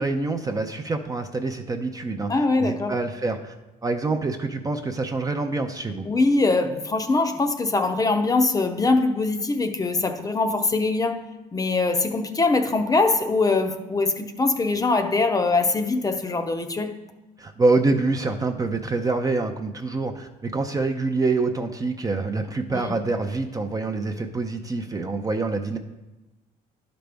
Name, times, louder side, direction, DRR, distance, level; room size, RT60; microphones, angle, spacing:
voice 1, 0.0-3.5 3.8-6.1 17.4-25.8, right 3 dB, 20° right, 5 dB, 0.5 m, -26 dB
voice 2, 2.3-2.9 6.0-11.2 11.5-16.9 22.7-22.9, left 3 dB, 20° left, 6 dB, 0.7 m, -22 dB
11.0 x 5.1 x 3.4 m, 1.1 s
cardioid pair, 110°, 17 cm